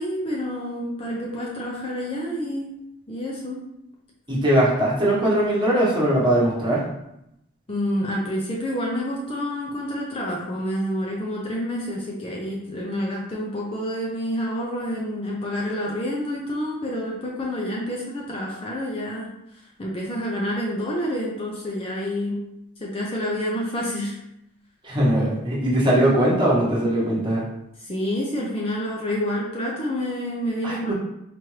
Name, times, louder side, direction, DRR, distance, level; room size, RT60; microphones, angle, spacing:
voice 1, 0.0-2.7 3.1-3.6 7.7-22.4 22.8-24.2 27.8-30.9, equal, 25° left, -3 dB, 0.5 m, -28 dB
voice 2, 4.3-6.8 24.8-27.4 30.6-30.9, right 1 dB, 20° right, -7 dB, 1.1 m, -20 dB
4.4 x 2.5 x 3.2 m, 0.83 s
head